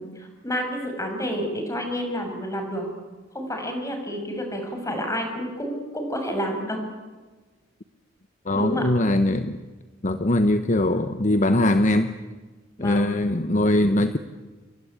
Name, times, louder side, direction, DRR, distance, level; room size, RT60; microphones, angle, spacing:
voice 1, 0.0-2.9 3.3-6.8 8.5-8.9 12.8-13.1, equal, 15° left, 4 dB, 6.9 m, -29 dB
voice 2, 8.5-9.6 10.0-12.1 12.8-14.2, left 1 dB, 40° left, 9 dB, 1.1 m, -21 dB
28.5 x 23.5 x 8.8 m, 1.3 s
head